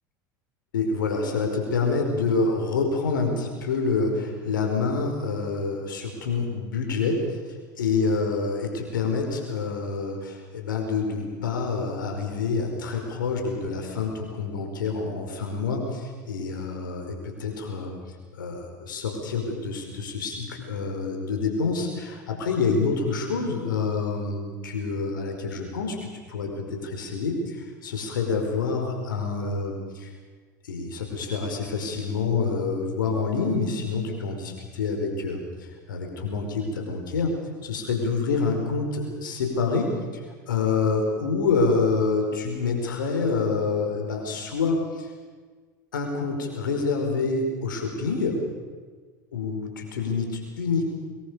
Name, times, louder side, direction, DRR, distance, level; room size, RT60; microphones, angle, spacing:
voice 1, 0.7-7.4 7.8-17.9 18.4-30.1 30.6-37.3 37.6-39.9 40.5-45.1 45.9-48.4 49.3-50.9, left 4 dB, 80° left, 3 dB, 5.1 m, -27 dB
23.5 x 22.0 x 7.0 m, 1.5 s
hypercardioid pair, 80°, 11 cm